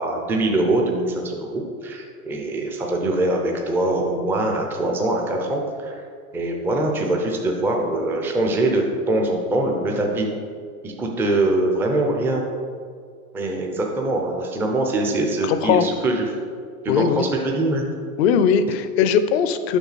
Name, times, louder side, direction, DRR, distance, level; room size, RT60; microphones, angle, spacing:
voice 1, 0.0-6.0 6.3-10.3 10.8-12.4 13.3-16.3 17.0-17.8, right 2 dB, 5° right, 1 dB, 0.4 m, -23 dB
voice 2, 15.4-15.9 16.9-17.3 18.2-19.8, left 7 dB, 45° left, 11 dB, 0.5 m, -19 dB
7.1 x 5.7 x 4.0 m, 2.1 s
hypercardioid pair, 125°, 44 cm